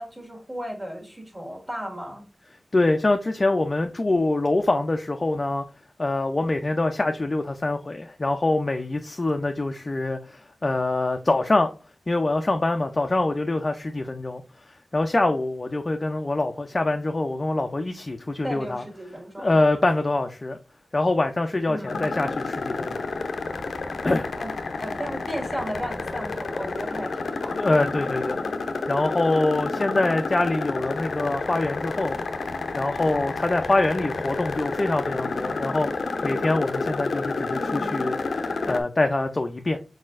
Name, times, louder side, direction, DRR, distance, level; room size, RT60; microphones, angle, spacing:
voice 1, 0.0-2.3 18.4-19.6 21.7-22.0 24.4-24.5 24.8-27.7 29.7-30.1, equal, 30° right, 1.9 m, -35 dB
voice 2, 2.7-5.7 6.0-11.7 12.1-14.4 14.7-18.8 19.4-20.6 20.9-23.0 24.0-24.3 27.6-28.4 28.9-32.2 32.7-35.9 36.2-39.8, left 2 dB, 40° left, 0.5 m, -24 dB
sound 1, 21.9-38.8, left 3 dB, 80° left, 0.6 m, -30 dB
4.4 x 4.2 x 2.4 m
cardioid pair, 55°, 0 cm